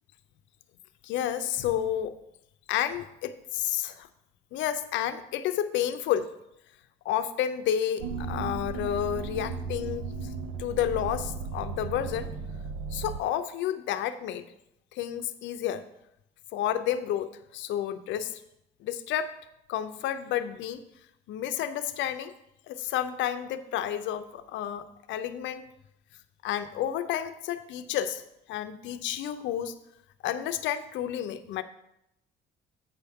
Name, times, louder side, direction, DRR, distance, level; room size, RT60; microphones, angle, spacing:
voice 1, 1.0-2.2 2.7-4.1 4.5-6.3 7.0-10.1 10.6-12.3 12.9-14.5 14.9-15.8 16.5-18.4 18.8-19.3 19.7-20.8 21.3-22.3 22.7-25.6 26.4-28.2 28.5-29.7 30.2-31.6, left 10 dB, 70° left, 11 dB, 0.5 m, -30 dB
sound 1, 8.0-13.2, right 5 dB, 80° right, 0.6 m, -35 dB
8.4 x 5.7 x 3.5 m, 0.83 s
cardioid pair, 155°, 20 cm